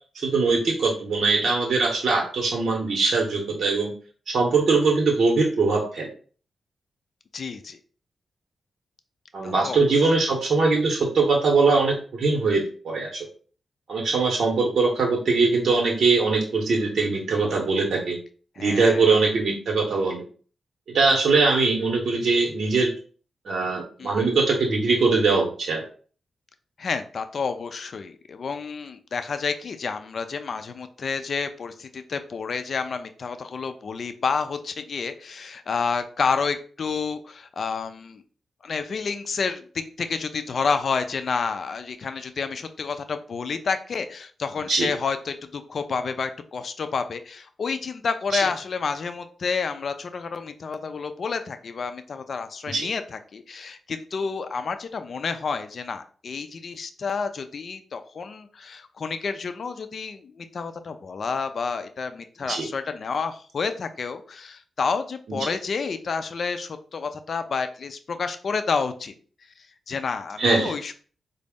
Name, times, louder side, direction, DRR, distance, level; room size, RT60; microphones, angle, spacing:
voice 1, 0.1-3.9 4.3-6.1 9.3-13.2 13.9-18.2 18.6-20.2 20.9-22.9 23.5-25.8 44.7-44.9 48.3-48.4 52.7-52.9 62.5-62.7 65.3-65.4 70.4-70.7, right 4 dB, 70° right, -1 dB, 0.8 m, -22 dB
voice 2, 7.3-7.8 9.4-9.8 18.6-19.1 24.0-24.3 26.8-38.2 38.6-69.1 69.6-70.9, left 5 dB, 60° left, 9 dB, 0.4 m, -29 dB
4.0 x 2.0 x 3.5 m, 0.42 s
supercardioid pair, 45°, 0 cm